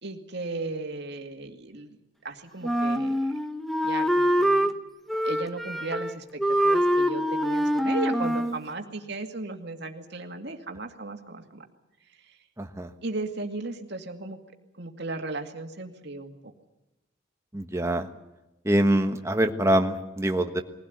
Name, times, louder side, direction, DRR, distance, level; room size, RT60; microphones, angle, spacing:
voice 1, 0.0-2.0 2.2-3.2 3.8-4.7 5.2-11.6 12.2-12.4 13.0-14.4 14.7-16.5, right 3 dB, 55° right, 5 dB, 2.3 m, -36 dB
Wind instrument woodwind instrument, 2.6-4.7 5.1-6.1 6.4-8.6, equal, ahead, 1.1 m, -24 dB
voice 2, 12.6-12.9 17.5-18.1 18.6-20.6, right 1 dB, 15° right, 6 dB, 1.4 m, -24 dB
22.0 x 16.5 x 9.5 m, 0.97 s
head